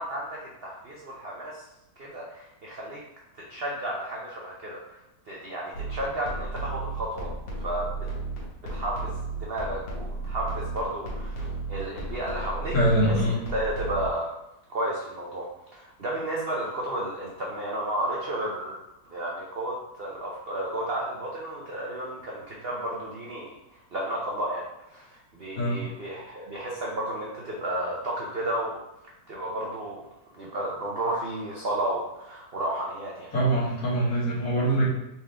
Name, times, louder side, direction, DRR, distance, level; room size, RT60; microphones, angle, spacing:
voice 1, 0.0-1.6 2.0-3.0 3.3-5.0 5.3-7.3 7.6-7.9 8.7-12.7 13.5-14.3 14.7-18.8 19.1-24.6 24.9-25.1 25.3-28.8 29.3-30.1 30.3-33.3, right 1 dB, 75° right, -4 dB, 0.5 m, -32 dB
sound 1, 5.7-14.1, right 3 dB, 80° left, 1.8 m, -34 dB
voice 2, 12.7-13.4 25.6-25.9 33.3-34.9, right 1 dB, 55° left, -6 dB, 1.8 m, -23 dB
4.3 x 3.6 x 3.3 m, 0.91 s
omnidirectional pair, 1.9 m